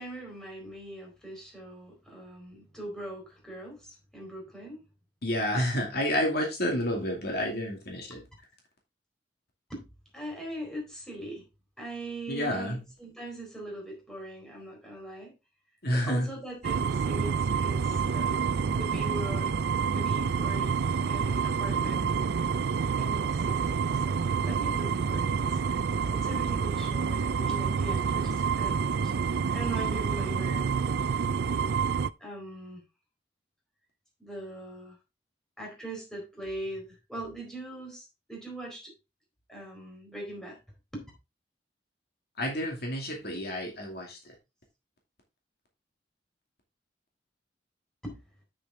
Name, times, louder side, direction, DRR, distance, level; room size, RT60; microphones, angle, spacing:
voice 1, 0.0-4.8 8.1-8.2 9.7-9.8 10.1-11.5 11.8-15.3 15.9-20.7 21.1-22.1 23.0-30.7 32.2-32.8 34.2-35.0 35.6-38.9 39.5-40.6 40.9-41.1 48.0-48.2, right 1 dB, 5° left, -1 dB, 4.1 m, -41 dB
voice 2, 5.2-8.2 12.3-12.8 15.8-16.3 42.4-44.3, equal, 60° left, 1 dB, 2.5 m, -29 dB
sound 1, 16.6-32.1, right 6 dB, 65° right, 0.4 m, -28 dB
8.3 x 6.6 x 3.6 m, 0.26 s
head